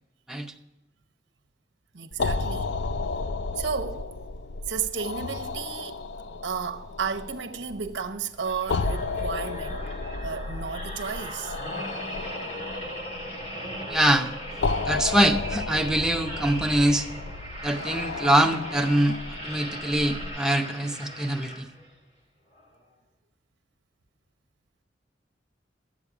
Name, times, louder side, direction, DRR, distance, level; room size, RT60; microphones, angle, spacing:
voice 1, 1.9-2.7 3.5-4.1 4.7-6.0 6.4-9.8 10.2-11.6, right 6 dB, 90° right, 0.9 m, -33 dB
sound 1, 2.1-20.3, left 3 dB, 70° left, 0.5 m, -33 dB
sound 2, 8.4-22.0 22.5-22.7, equal, 40° left, 2.1 m, -39 dB
voice 2, 13.9-14.3 14.8-17.1 17.6-21.7, right 1 dB, 5° right, 0.7 m, -24 dB
12.5 x 8.1 x 4.9 m
head